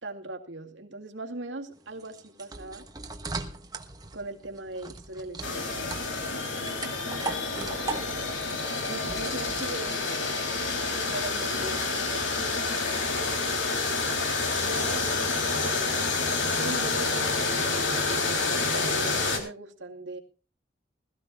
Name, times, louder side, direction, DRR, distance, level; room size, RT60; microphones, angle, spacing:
voice 1, 0.0-2.9 4.1-6.1 8.9-10.3 10.9-12.8 14.7-15.1 15.6-16.2 16.6-17.4 18.7-20.2, right 2 dB, 75° right, 4 dB, 2.3 m, -39 dB
sound 1, 1.7-10.5, right 3 dB, 20° right, 1.3 m, -39 dB
sound 2, 5.4-19.4, left 3 dB, 85° left, 3.4 m, -28 dB
20.5 x 14.5 x 2.4 m, 0.33 s
head